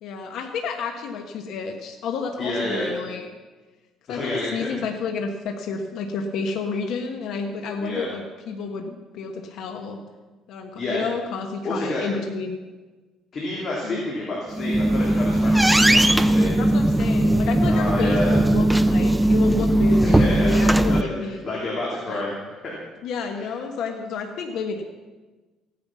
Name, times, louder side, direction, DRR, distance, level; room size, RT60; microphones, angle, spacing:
voice 1, 0.0-3.3 4.1-10.0 10.5-12.6 13.8-14.0 15.8-16.1 16.6-21.4 22.1-22.3 23.0-24.8, left 5 dB, 65° left, 3 dB, 1.3 m, -30 dB
voice 2, 2.4-2.9 4.1-4.7 7.8-8.1 10.8-11.0 11.6-12.0 13.3-16.5 17.7-18.4 20.0-21.1 21.4-22.3 22.6-22.7 23.3-23.4, left 2 dB, 40° left, -4 dB, 3.2 m, -29 dB
sound 1, 14.5-21.0, right 1 dB, 5° right, 0.5 m, -18 dB
16.0 x 9.6 x 6.2 m, 1.3 s
cardioid pair, 140°, 0 cm